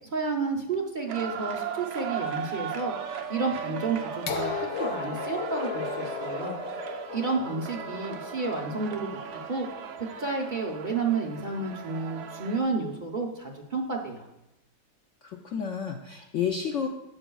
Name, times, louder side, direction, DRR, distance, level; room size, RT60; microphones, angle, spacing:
voice 1, 0.1-2.9 3.3-4.5 4.8-6.5 7.1-9.1 9.5-9.7 10.0-14.3, right 4 dB, 45° right, -1 dB, 0.6 m, -31 dB
sound 1, 1.1-12.6, right 8 dB, 70° right, 1.2 m, -37 dB
sound 2, 4.3-10.1 11.2-11.3, left 7 dB, 85° left, 1.4 m, -36 dB
voice 2, 15.2-16.9, left 7 dB, 70° left, 3 dB, 0.7 m, -31 dB
11.0 x 7.9 x 2.3 m, 0.87 s
omnidirectional pair, 1.9 m